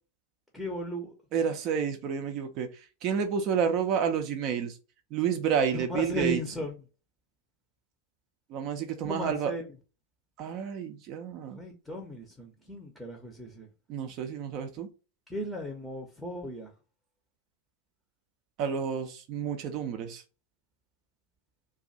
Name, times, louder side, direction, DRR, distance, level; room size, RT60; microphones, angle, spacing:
voice 1, 0.5-1.1 5.9-6.7 9.0-9.6 11.6-13.7 15.3-16.7, equal, ahead, 0.7 m, -35 dB
voice 2, 1.3-2.7 3.0-4.8 5.1-6.4 8.5-9.5 10.4-11.6 13.9-14.9 18.6-20.2, right 7 dB, 40° right, 0.5 m, -30 dB
2.5 x 2.4 x 4.0 m
figure-of-eight pair, 90°, 0 cm